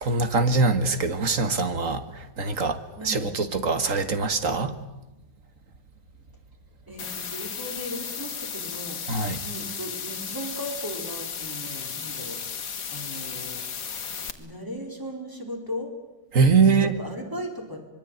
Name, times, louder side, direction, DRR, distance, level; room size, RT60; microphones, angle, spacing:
voice 1, 0.0-2.0 2.4-2.8 3.0-4.7 9.1-9.4 16.3-16.9, right 4 dB, 40° right, 10 dB, 1.9 m, -22 dB
voice 2, 3.0-3.3 6.9-9.0 9.4-13.6 14.4-15.9 16.6-17.8, equal, 10° right, 2 dB, 4.8 m, -37 dB
sound 1, 7.0-14.3, left 7 dB, 60° left, 2.4 m, -34 dB
25.5 x 22.5 x 9.3 m, 0.97 s
omnidirectional pair, 2.2 m